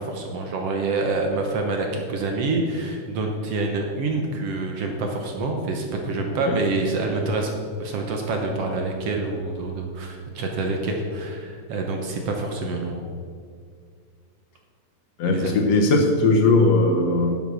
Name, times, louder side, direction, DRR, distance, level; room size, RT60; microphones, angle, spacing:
voice 1, 0.0-7.5 7.8-13.0 15.3-15.8, right 3 dB, 60° right, 3 dB, 1.9 m, -27 dB
voice 2, 15.2-17.4, left 2 dB, 65° left, 2 dB, 1.9 m, -19 dB
11.5 x 7.8 x 6.2 m, 2.1 s
omnidirectional pair, 3.4 m